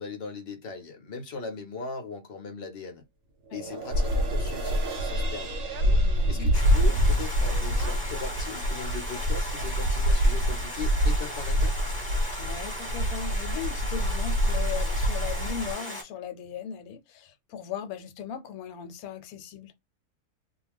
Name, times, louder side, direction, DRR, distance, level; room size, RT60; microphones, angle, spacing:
voice 1, 0.0-3.0 3.5-5.5 6.3-11.8, left 4 dB, 50° left, 0.8 m, -39 dB
sound 1, 3.4-10.0 10.5-10.6, right 4 dB, 50° right, 0.9 m, -41 dB
voice 2, 3.5-3.8 5.9-6.5 12.4-19.7, left 8 dB, 75° left, 1.0 m, -38 dB
sound 2, 3.9-15.7, equal, 80° right, 1.1 m, -26 dB
Stream, 6.5-16.0, equal, 10° right, 0.8 m, -37 dB
2.4 x 2.2 x 3.3 m
omnidirectional pair, 1.6 m